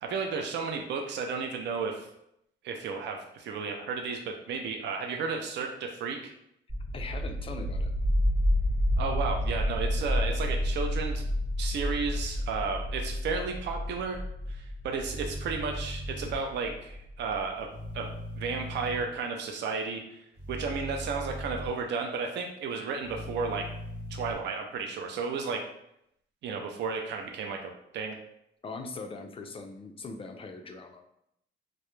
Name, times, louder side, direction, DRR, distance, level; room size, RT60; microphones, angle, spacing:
voice 1, 0.0-2.1 2.6-6.3 9.0-11.3 11.6-14.2 14.5-17.7 17.9-20.2 20.5-23.7 24.1-25.6 26.4-28.2, right 5 dB, 60° right, 3 dB, 0.4 m, -33 dB
sound 1, 6.7-17.4, left 1 dB, 20° right, 0.9 m, -30 dB
voice 2, 6.9-7.9 28.6-31.0, left 3 dB, 30° left, 5 dB, 0.3 m, -41 dB
sound 2, 15.0-16.3 17.7-19.0 20.4-21.7 23.0-24.3, equal, 80° right, 0.8 m, -39 dB
2.2 x 2.0 x 3.0 m, 0.76 s
cardioid pair, 90°, 20 cm